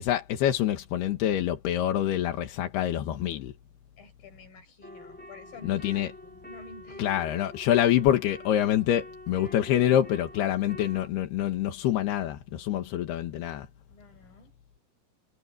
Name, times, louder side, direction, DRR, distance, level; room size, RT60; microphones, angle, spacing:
voice 1, 0.0-3.5 5.6-6.1 7.0-13.7, left 11 dB, 85° left, 3.6 m, -26 dB
voice 2, 4.0-7.1 13.9-14.5, left 3 dB, 65° left, 8.1 m, -50 dB
sound 1, 4.8-11.1, left 1 dB, 5° left, 1.0 m, -46 dB
omnidirectional pair, 4.5 m